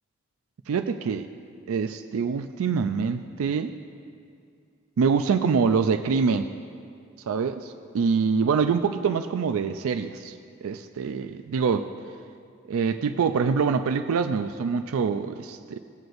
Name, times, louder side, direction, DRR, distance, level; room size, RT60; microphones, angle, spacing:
voice 1, 0.7-1.3 1.7-3.7 5.0-6.5 7.3-11.9 12.6-15.8, right 5 dB, 85° right, 8 dB, 0.4 m, -25 dB
17.5 x 7.8 x 2.6 m, 2.3 s
head